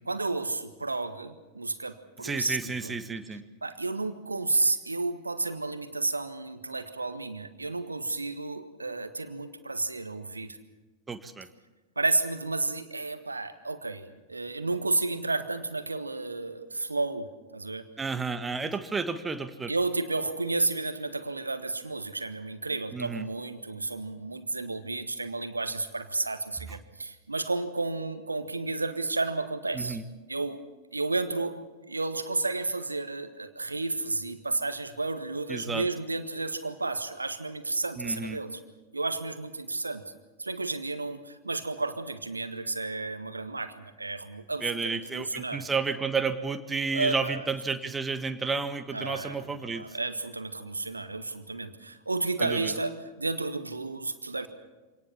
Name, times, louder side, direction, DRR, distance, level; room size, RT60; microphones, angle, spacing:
voice 1, 0.1-2.9 3.6-10.6 12.0-17.9 19.7-30.0 30.3-30.6 30.9-38.6 38.9-40.0 40.4-45.6 46.9-47.4 48.9-54.5, right 3 dB, 80° right, 11 dB, 1.6 m, -32 dB
voice 2, 2.2-3.4 11.1-11.5 18.0-19.7 22.9-23.3 29.7-30.0 35.5-35.9 38.0-38.4 44.6-49.9 52.4-52.8, right 4 dB, 15° right, 10 dB, 1.6 m, -31 dB
26.0 x 18.5 x 7.3 m, 1.2 s
figure-of-eight pair, 90°, 0 cm